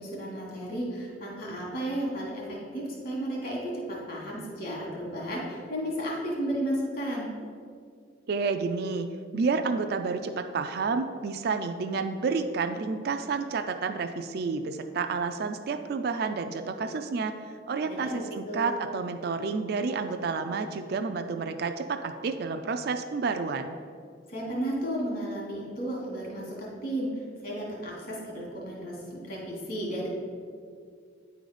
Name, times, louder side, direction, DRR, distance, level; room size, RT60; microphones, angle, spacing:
voice 1, 0.0-7.3 17.8-18.2 18.5-18.8 24.3-30.1, right 1 dB, 50° left, -3 dB, 2.0 m, -33 dB
voice 2, 8.3-9.1 9.3-17.4 17.7-23.7, right 4 dB, 55° right, 7 dB, 0.4 m, -30 dB
9.4 x 3.9 x 4.9 m, 2.1 s
head